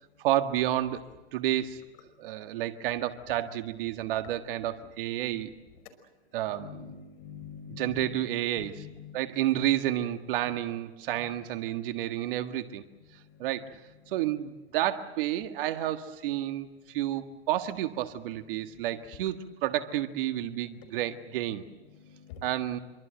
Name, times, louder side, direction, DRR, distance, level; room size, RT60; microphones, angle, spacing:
voice 1, 0.2-1.0 1.3-1.8 2.2-5.5 6.3-6.9 7.7-8.9 9.1-12.8 13.4-13.8 14.1-21.6 22.4-22.8, right 13 dB, 50° right, 8 dB, 1.8 m, -30 dB
voice 2, 6.5-8.2 8.6-9.3 10.5-10.6 11.1-11.4 14.1-14.3 18.3-18.4 19.2-19.3 21.9-22.7, left 7 dB, 50° left, 10 dB, 5.6 m, -46 dB
27.0 x 24.0 x 7.7 m, 1.1 s
hypercardioid pair, 130°, 34 cm